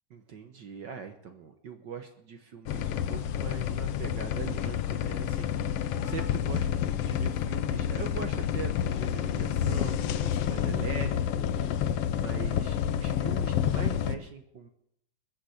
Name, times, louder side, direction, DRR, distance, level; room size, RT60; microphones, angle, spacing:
voice 1, 0.1-11.1 11.4-14.7, right 6 dB, 70° right, 6 dB, 1.0 m, -42 dB
sound 1, 2.7-14.1, left 9 dB, 75° left, 1.4 m, -29 dB
21.0 x 7.4 x 7.9 m, 0.74 s
omnidirectional pair, 3.5 m